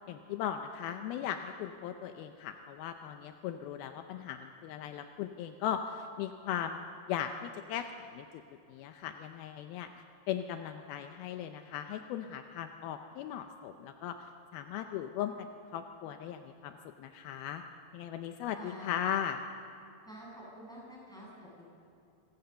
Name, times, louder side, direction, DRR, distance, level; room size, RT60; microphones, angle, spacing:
voice 1, 0.1-8.3 8.7-9.9 10.3-14.2 14.5-15.3 15.7-17.6 17.9-19.4, left 9 dB, 80° left, 7 dB, 2.5 m, -38 dB
voice 2, 18.6-19.0 20.1-21.6, equal, ahead, -5 dB, 7.0 m, -49 dB
26.5 x 17.0 x 6.9 m, 2.5 s
omnidirectional pair, 4.4 m